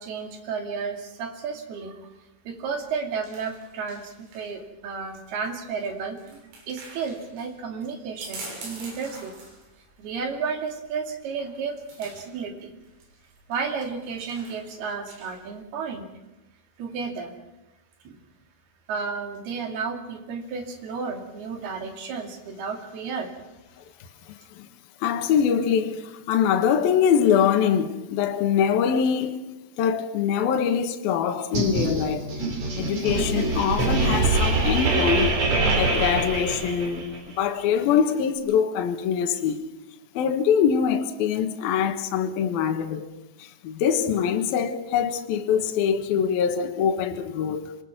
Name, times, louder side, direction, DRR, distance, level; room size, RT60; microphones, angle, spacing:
voice 1, 0.0-2.1 2.5-6.4 6.7-9.3 10.0-12.7 13.5-16.1 16.8-17.3 18.0-18.2 18.9-23.3, right 5 dB, 55° right, 4.2 m, -32 dB
sound 1, 2.6-15.5, right 2 dB, 75° right, 9.5 m, -46 dB
voice 2, 25.0-29.4 29.8-32.3 32.8-35.3 35.7-37.1 37.4-39.6 40.1-43.1 43.6-47.6, left 8 dB, 65° left, 2.7 m, -23 dB
sound 2, 31.5-37.2, right 3 dB, 40° right, 3.9 m, -24 dB
26.5 x 22.0 x 6.1 m
omnidirectional pair, 5.8 m